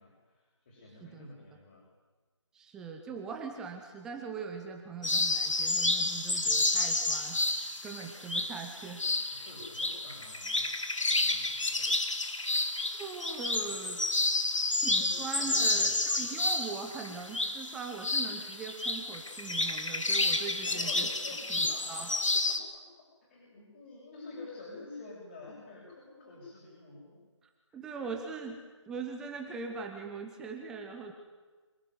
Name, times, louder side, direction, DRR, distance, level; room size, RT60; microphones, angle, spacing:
voice 1, 0.0-1.9 9.3-11.9 12.2-12.6 15.0-15.9 20.6-22.8 23.2-27.2 27.7-27.8, left 2 dB, 30° left, -5 dB, 7.4 m, -49 dB
voice 2, 2.5-9.0 12.9-14.0 14.7-21.1 21.5-22.1 27.7-28.6 28.9-31.1, right 5 dB, 5° right, 3 dB, 1.0 m, -41 dB
sound 1, 5.0-22.6, left 2 dB, 85° left, 3.0 m, -30 dB
26.5 x 18.5 x 9.8 m, 1.3 s
figure-of-eight pair, 165°, 16 cm